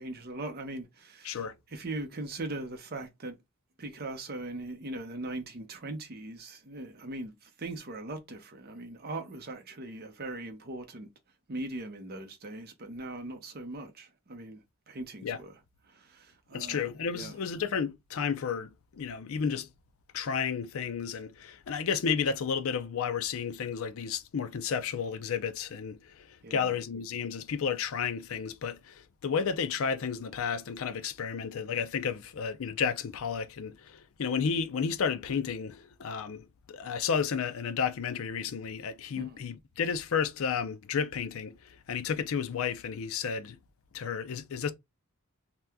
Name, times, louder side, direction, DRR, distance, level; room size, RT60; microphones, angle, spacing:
voice 1, 0.0-1.4 1.7-3.4 3.8-11.1 11.5-14.6 14.9-15.5 15.9-16.9 17.1-17.3 26.4-26.7 39.2-39.3, right 2 dB, 45° right, 0.7 m, -40 dB
voice 2, 1.2-1.6 15.2-15.4 16.5-19.7 20.1-43.6 43.9-44.7, left 6 dB, 65° left, 0.4 m, -32 dB
2.8 x 2.2 x 3.4 m
head